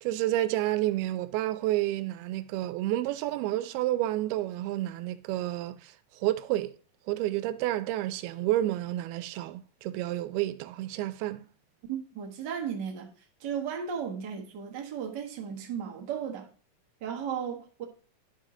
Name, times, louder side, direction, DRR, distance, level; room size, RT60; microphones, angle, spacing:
voice 1, 0.0-5.9 6.2-6.7 7.1-11.5, right 14 dB, 85° right, 2.6 m, -30 dB
voice 2, 11.9-13.1 13.4-16.5 17.0-17.8, right 7 dB, 70° right, 1.0 m, -35 dB
11.5 x 5.5 x 3.8 m
omnidirectional pair, 4.4 m